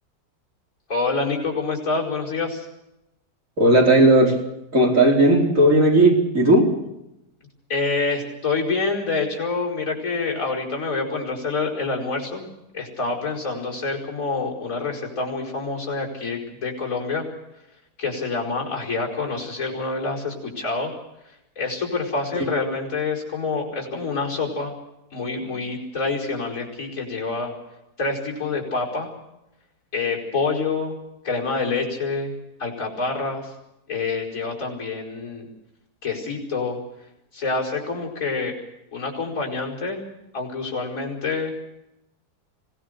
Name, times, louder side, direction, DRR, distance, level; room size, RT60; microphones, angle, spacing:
voice 1, 0.9-2.7 7.7-17.3 18.0-20.9 21.6-24.7 25.1-27.5 28.0-29.1 29.9-30.9 31.2-32.3 32.6-33.5 33.9-35.5 36.0-36.8 37.3-38.6 38.9-40.0 40.3-41.6, left 3 dB, 55° left, -2 dB, 5.6 m, -27 dB
voice 2, 3.6-4.4 4.7-6.7 22.3-22.5, right 1 dB, 55° right, 0 dB, 4.9 m, -16 dB
25.5 x 17.5 x 6.7 m, 0.88 s
omnidirectional pair, 1.7 m